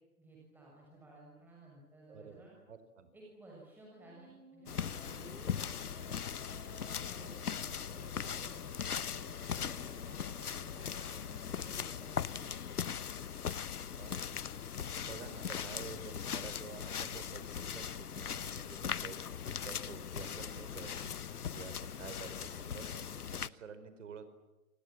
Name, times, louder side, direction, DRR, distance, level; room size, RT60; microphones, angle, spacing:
voice 1, 0.2-2.5 3.1-6.4 7.0-9.0 9.5-12.8, right 2 dB, 5° right, -3 dB, 6.5 m, -57 dB
voice 2, 2.1-3.1 14.0-14.5 15.1-19.2 19.6-21.1 21.5-24.3, right 6 dB, 55° right, 11 dB, 4.8 m, -50 dB
Musical instrument, 4.0-12.7, right 3 dB, 90° right, 4.7 m, -58 dB
sound 1, 4.7-23.5, left 8 dB, 80° left, 1.1 m, -40 dB
29.5 x 26.5 x 7.6 m, 1.0 s
hypercardioid pair, 145°, 45 cm